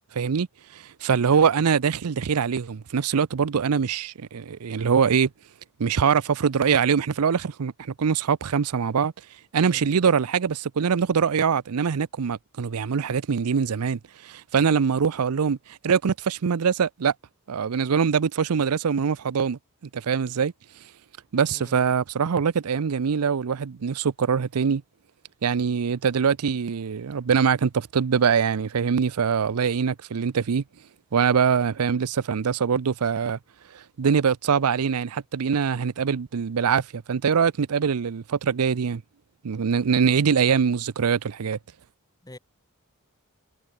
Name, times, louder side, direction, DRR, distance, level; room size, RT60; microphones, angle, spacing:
voice 1, 0.1-0.5 0.7-5.3 5.8-9.1 9.5-17.1 17.5-19.6 19.9-20.5 21.3-24.8 25.4-30.6 31.1-33.4 33.7-39.0 39.4-41.6, right 6 dB, 85° right, 0.5 m, -23 dB
voice 2, 9.5-9.9 21.4-21.8 42.2-42.4, left 1 dB, 15° left, 3.3 m, -46 dB
head